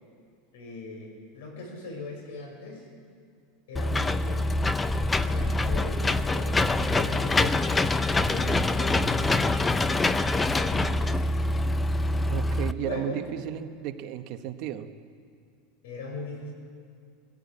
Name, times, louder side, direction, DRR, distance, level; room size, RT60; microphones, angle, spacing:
voice 1, 0.5-2.9 3.7-4.6 5.2-7.7 8.1-10.1 10.4-11.0 12.8-13.2 15.8-16.5, left 3 dB, 85° left, 2 dB, 6.5 m, -39 dB
Engine / Mechanisms, 3.8-12.7, left 2 dB, 10° left, 0.5 m, -25 dB
voice 2, 12.3-14.9, right 11 dB, 45° right, 8 dB, 1.2 m, -34 dB
21.5 x 16.0 x 8.7 m, 2.3 s
supercardioid pair, 165°, 0 cm